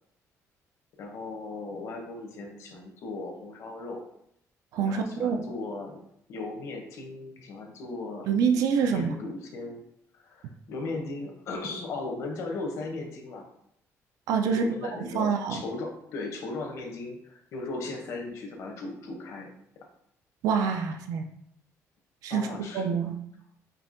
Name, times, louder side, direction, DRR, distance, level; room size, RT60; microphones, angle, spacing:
voice 1, 1.0-4.0 4.8-6.0 6.3-8.3 8.8-9.8 10.1-13.4 14.4-19.5 22.3-23.1, left 3 dB, 55° left, 2 dB, 0.8 m, -37 dB
voice 2, 4.7-5.4 8.3-9.1 14.3-14.6 14.9-15.6 20.4-21.3 22.2-22.5 22.7-23.2, right 6 dB, 80° right, 5 dB, 0.5 m, -26 dB
5.3 x 2.7 x 2.6 m, 0.73 s
cardioid pair, 175°, 6 cm